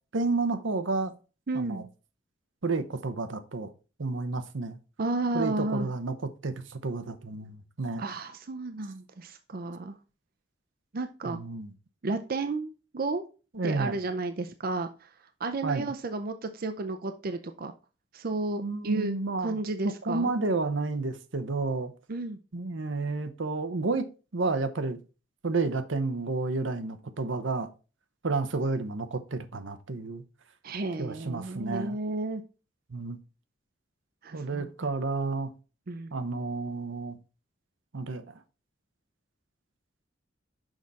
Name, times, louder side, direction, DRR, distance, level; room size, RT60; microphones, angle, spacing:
voice 1, 0.1-1.1 1.5-1.8 2.6-3.7 4.0-4.8 5.3-6.2 6.4-8.0 11.2-11.7 13.5-13.9 15.6-15.9 18.6-19.6 20.1-21.9 22.5-24.0 24.3-25.0 25.4-27.7 28.2-30.2 31.0-32.0 32.9-33.2 34.3-35.5 36.1-37.2 37.9-38.2, right 3 dB, 85° right, 0.9 m, -30 dB
voice 2, 1.5-1.9 5.0-5.9 8.0-10.0 10.9-11.4 12.0-13.2 13.6-15.1 15.4-17.7 18.1-19.1 19.4-20.3 22.1-22.4 30.6-32.4 34.2-34.7 35.9-36.1, right 2 dB, 50° right, 0.5 m, -32 dB
6.4 x 4.9 x 4.1 m
head